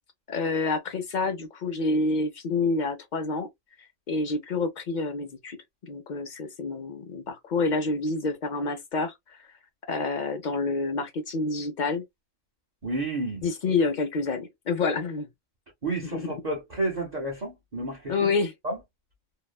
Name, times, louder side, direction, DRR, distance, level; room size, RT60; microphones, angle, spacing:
voice 1, 0.3-3.5 4.1-5.6 5.8-9.5 9.9-12.0 13.4-15.3 16.1-16.3 18.1-18.5, left 3 dB, 55° left, 0.5 m, -28 dB
voice 2, 12.8-13.4 15.8-18.1 18.6-18.8, right 2 dB, 35° right, 0.9 m, -30 dB
2.7 x 2.1 x 2.2 m
omnidirectional pair, 1.3 m